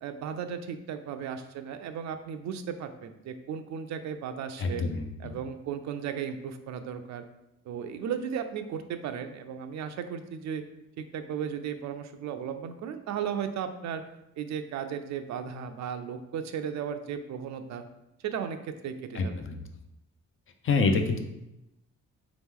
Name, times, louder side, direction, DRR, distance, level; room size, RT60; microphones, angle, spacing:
voice 1, 0.0-4.8 5.2-7.2 7.7-10.6 11.0-14.0 14.4-17.8 18.2-19.4, right 8 dB, 65° right, 8 dB, 0.4 m, -35 dB
voice 2, 4.6-5.1 19.1-19.6 20.6-21.2, left 4 dB, 45° left, 5 dB, 0.6 m, -26 dB
3.6 x 3.0 x 3.6 m, 0.89 s
cardioid pair, 90°, 30 cm